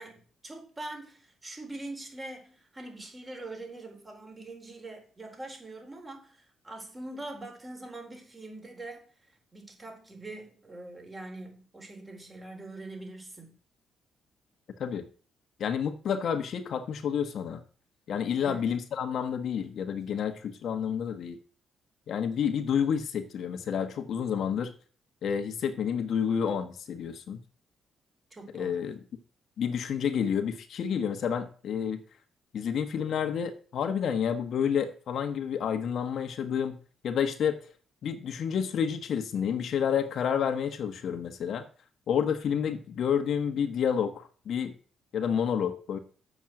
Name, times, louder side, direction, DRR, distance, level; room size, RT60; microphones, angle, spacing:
voice 1, 0.0-9.0 9.5-13.5 18.4-18.6 28.3-28.9, right 2 dB, 25° right, 4.1 m, -43 dB
voice 2, 15.6-17.6 18.1-21.4 22.1-24.7 25.2-27.4 28.5-29.0 29.6-32.0 32.5-36.8 37.0-37.6 38.0-41.7 42.1-44.7 45.1-46.0, left 7 dB, 65° left, 1.3 m, -29 dB
7.3 x 6.2 x 7.7 m
cardioid pair, 90°, 0 cm